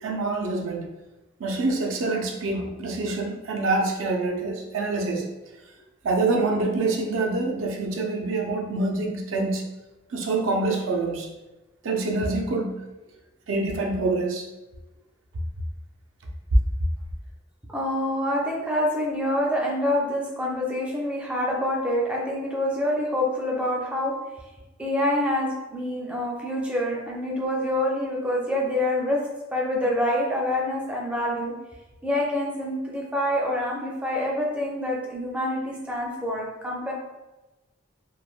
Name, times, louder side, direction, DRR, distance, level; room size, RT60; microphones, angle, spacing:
voice 1, 0.0-0.9 1.4-5.3 6.0-9.6 10.1-11.3 11.8-12.8 13.5-14.5, right 3 dB, 90° right, 1 dB, 0.5 m, -26 dB
voice 2, 17.7-24.2 24.8-31.5 32.0-36.9, left 1 dB, 5° right, -3 dB, 0.4 m, -26 dB
3.1 x 2.1 x 2.4 m, 1.1 s
head